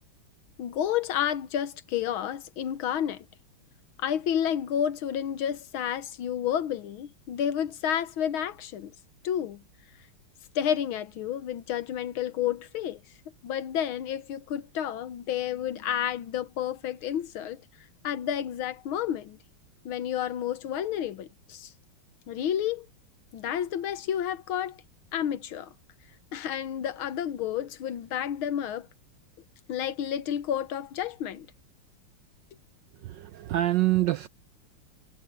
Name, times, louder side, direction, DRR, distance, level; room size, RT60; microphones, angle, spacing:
voice 1, 0.6-3.3 4.0-8.9 9.2-9.6 10.6-13.0 13.4-17.6 18.0-19.4 19.9-21.7 22.3-22.9 23.3-24.8 25.1-25.7 26.3-28.9 29.7-31.5, left 10 dB, 70° left, 1.7 m, -30 dB
voice 2, 33.2-34.3, right 15 dB, 75° right, 1.1 m, -25 dB
omnidirectional pair, 2.4 m